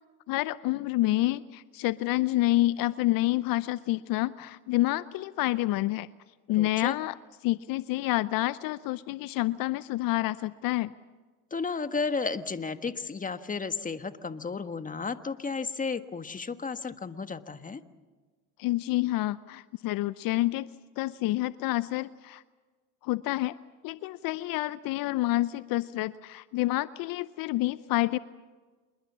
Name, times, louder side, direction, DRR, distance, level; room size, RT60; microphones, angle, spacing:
voice 1, 0.3-6.1 6.5-7.2 7.4-10.9 18.6-20.7 21.0-22.4 23.0-23.6 23.8-28.2, left 17 dB, 65° left, 16 dB, 0.7 m, -28 dB
voice 2, 6.5-6.9 11.5-17.8, left 4 dB, 20° left, 10 dB, 1.5 m, -33 dB
27.5 x 21.5 x 7.4 m, 1.4 s
supercardioid pair, 80°, 37 cm